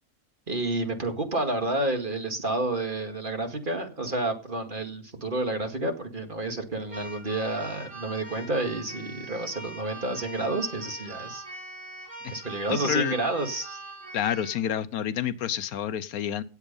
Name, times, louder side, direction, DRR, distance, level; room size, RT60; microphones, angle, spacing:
voice 1, 0.5-11.4 12.3-13.8, right 2 dB, 35° right, 5 dB, 2.2 m, -30 dB
Keyboard (musical), 6.9-14.6, right 2 dB, 85° right, 7.2 m, -42 dB
voice 2, 12.7-13.2 14.1-16.4, left 9 dB, 90° left, 15 dB, 1.3 m, -28 dB
17.5 x 8.1 x 5.5 m, 0.39 s
omnidirectional pair, 1.5 m